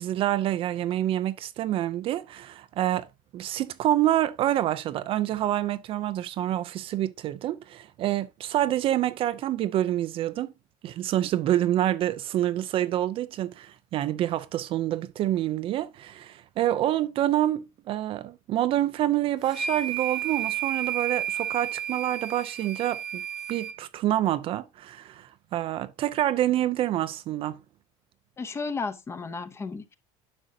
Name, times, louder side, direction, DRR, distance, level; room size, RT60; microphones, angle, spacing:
voice 1, 0.0-3.1 3.3-10.5 10.8-23.2 23.5-27.6, right 13 dB, 40° right, 0.5 m, -27 dB
sound 1, 19.5-23.7, right 9 dB, 5° right, 1.2 m, -32 dB
voice 2, 28.4-29.9, left 4 dB, 20° left, 0.7 m, -33 dB
9.8 x 6.3 x 2.7 m
cardioid pair, 150°, 14 cm